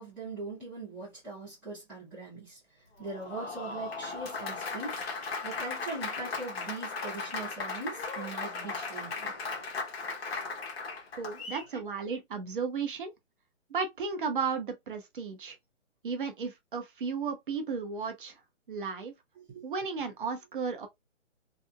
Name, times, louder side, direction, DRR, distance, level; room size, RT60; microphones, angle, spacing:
voice 1, 0.0-2.6 3.0-5.0 5.4-9.3 11.7-11.8 19.4-19.6, right 3 dB, ahead, 0.6 m, -41 dB
Applause, 3.0-11.7, left 4 dB, 50° left, 0.9 m, -37 dB
voice 2, 11.2-13.1 13.7-15.6 16.0-18.4 18.7-19.1 19.6-20.9, right 5 dB, 40° right, 0.7 m, -34 dB
2.8 x 2.4 x 2.2 m
figure-of-eight pair, 145°, 38 cm